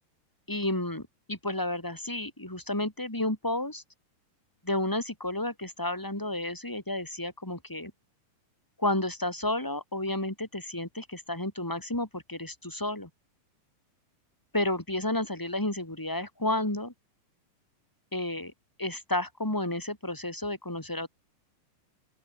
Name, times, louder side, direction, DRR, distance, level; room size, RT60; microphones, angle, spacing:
voice 1, 0.5-3.8 4.6-7.9 8.8-13.1 14.5-16.9 18.1-18.5 18.8-21.1, left 1 dB, 5° left, 4.2 m, -31 dB
open air
omnidirectional pair, 3.9 m